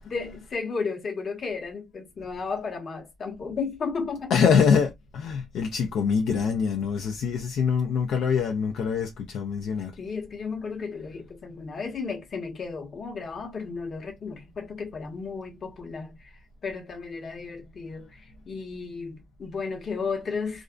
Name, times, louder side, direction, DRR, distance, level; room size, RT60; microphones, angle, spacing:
voice 1, 0.0-4.3 10.0-16.2 16.6-18.1 18.5-20.6, left 4 dB, 50° left, 1.0 m, -33 dB
voice 2, 4.3-9.9, left 6 dB, 75° left, 0.4 m, -24 dB
2.4 x 2.1 x 2.4 m
cardioid pair, 80°, 0 cm